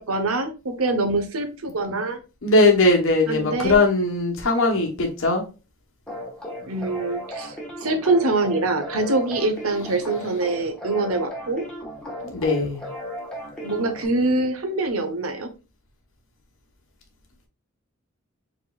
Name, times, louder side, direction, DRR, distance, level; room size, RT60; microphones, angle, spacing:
voice 1, 0.0-2.2 3.3-3.8 6.7-7.6 7.8-11.6 13.6-15.5, right 2 dB, 80° right, 8 dB, 1.0 m, -24 dB
voice 2, 2.4-5.4 12.2-12.9, left 2 dB, 65° left, 1 dB, 1.1 m, -20 dB
sound 1, 6.1-14.1, equal, 5° left, 1.4 m, -36 dB
5.0 x 3.7 x 2.4 m, 0.31 s
head